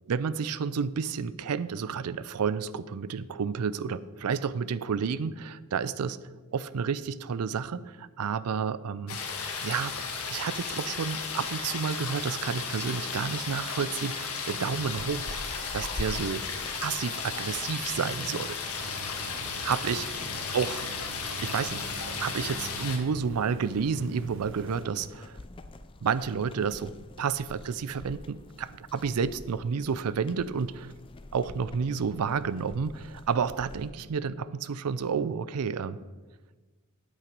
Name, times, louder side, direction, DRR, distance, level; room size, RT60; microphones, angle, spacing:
voice 1, 0.1-6.2 6.5-9.2 9.6-16.4 16.8-18.6 19.6-20.1 20.5-20.8 21.4-21.9 22.2-25.4 26.0-30.9 31.3-36.0, right 6 dB, 85° right, 17 dB, 0.4 m, -30 dB
sound 1, 9.1-23.0, left 5 dB, 80° left, 1.5 m, -35 dB
sound 2, 14.6-33.9, left 2 dB, 25° left, 0.4 m, -47 dB
sound 3, 18.8-24.9, right 2 dB, 60° right, 0.9 m, -44 dB
8.7 x 8.1 x 5.2 m, 1.3 s
head